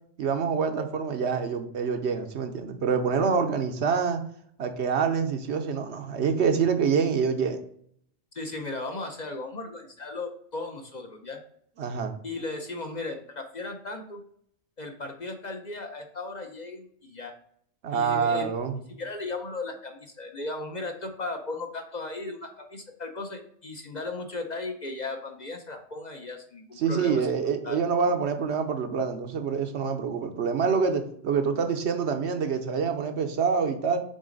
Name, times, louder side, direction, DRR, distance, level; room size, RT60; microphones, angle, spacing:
voice 1, 0.2-4.2 4.6-7.6 11.8-12.1 17.8-18.8 26.8-34.0, right 6 dB, 70° right, 6 dB, 1.0 m, -26 dB
voice 2, 8.3-11.4 12.2-14.2 14.8-17.3 17.9-18.5 19.0-27.3 27.6-27.8, left 3 dB, 45° left, 4 dB, 0.8 m, -36 dB
6.3 x 4.1 x 3.9 m, 0.65 s
omnidirectional pair, 1.2 m